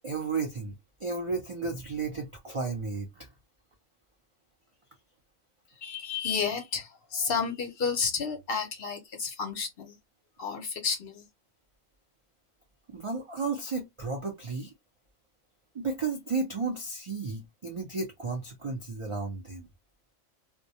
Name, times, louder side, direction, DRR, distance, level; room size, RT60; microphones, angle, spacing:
voice 1, 0.0-3.3 12.9-14.7 15.7-19.7, right 4 dB, 55° right, 0.3 m, -33 dB
voice 2, 5.8-10.0 10.4-11.2, left 5 dB, 60° left, 0.7 m, -31 dB
2.2 x 2.1 x 2.7 m
omnidirectional pair, 1.3 m